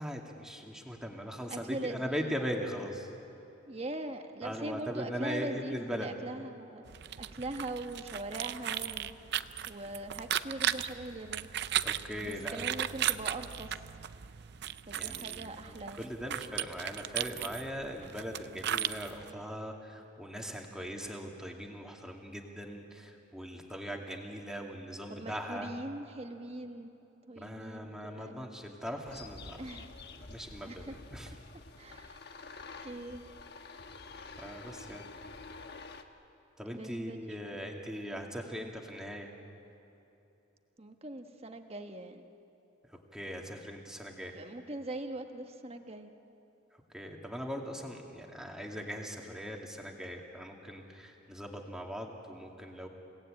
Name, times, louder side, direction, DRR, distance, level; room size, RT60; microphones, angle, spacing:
voice 1, 0.0-3.1 4.4-6.1 11.8-12.6 14.9-25.7 27.4-29.6 30.2-31.3 34.4-35.1 36.6-39.3 42.9-44.3 46.7-52.9, equal, 5° right, 0 dB, 2.2 m, -40 dB
voice 2, 1.5-2.3 3.7-6.8 7.2-9.1 9.7-11.5 12.2-13.8 14.9-16.1 25.1-26.9 27.3-28.4 29.6-29.9 30.7-31.0 31.8-32.2 32.8-33.2 36.7-37.6 40.8-42.3 44.3-46.1, right 2 dB, 30° right, 5 dB, 1.3 m, -41 dB
sound 1, 6.9-19.3, right 10 dB, 55° right, 0.5 m, -36 dB
sound 2, 29.0-36.0, left 3 dB, 55° left, 1.3 m, -48 dB
29.0 x 18.0 x 8.9 m, 2.9 s
head